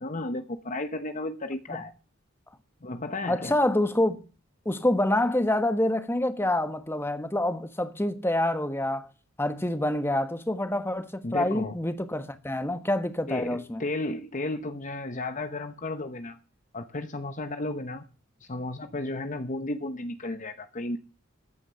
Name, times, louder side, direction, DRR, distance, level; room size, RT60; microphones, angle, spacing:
voice 1, 0.0-1.9 2.8-3.6 11.2-11.8 13.3-16.4 16.7-18.0 18.4-21.0, left 2 dB, 40° left, 0.9 m, -33 dB
voice 2, 3.3-4.2 4.6-9.1 9.4-13.8, left 1 dB, 10° left, 1.4 m, -27 dB
14.5 x 9.7 x 6.9 m
head